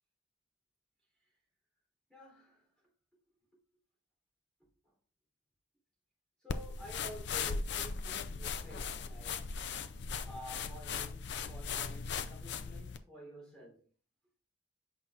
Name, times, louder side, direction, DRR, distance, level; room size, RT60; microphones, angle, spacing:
voice 1, 2.1-2.7 3.5-3.6 4.6-4.7 6.4-9.5 10.2-13.9, equal, 5° left, 3.4 m, -51 dB
sound 1, 6.5-13.0, left 5 dB, 65° left, 0.5 m, -38 dB
8.3 x 5.6 x 2.5 m
head